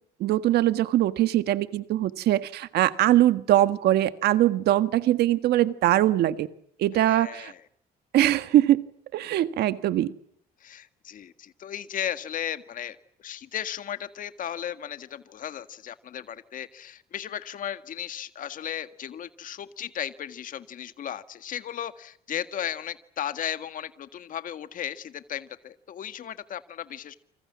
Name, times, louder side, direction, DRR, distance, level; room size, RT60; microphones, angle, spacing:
voice 1, 0.2-6.5 6.8-7.5 8.1-8.8 9.1-10.1, right 13 dB, 75° right, 12 dB, 1.6 m, -22 dB
voice 2, 6.9-7.6 10.6-27.1, left 10 dB, 50° left, 11 dB, 1.8 m, -35 dB
29.0 x 26.5 x 7.4 m, 0.67 s
cardioid pair, 110°, 17 cm